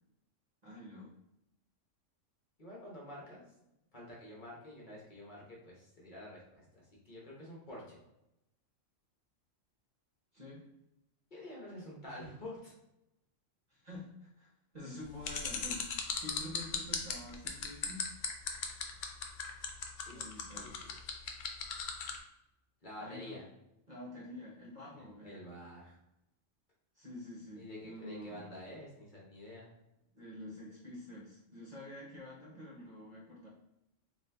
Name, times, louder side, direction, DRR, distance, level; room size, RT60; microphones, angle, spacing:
voice 1, 0.6-1.1 10.3-10.6 13.7-18.1 20.1-20.8 23.0-23.4 23.9-25.4 26.9-28.5 30.1-33.5, left 1 dB, 40° right, -5 dB, 0.8 m, -48 dB
voice 2, 2.6-3.4 3.9-8.0 11.3-12.7 19.9-20.2 20.6-21.2 22.8-23.4 24.9-26.0 27.5-29.7, left 1 dB, 40° left, -4 dB, 1.1 m, -49 dB
sound 1, 15.2-22.2, left 7 dB, 80° left, 0.9 m, -37 dB
4.0 x 2.5 x 3.3 m, 0.87 s
omnidirectional pair, 1.3 m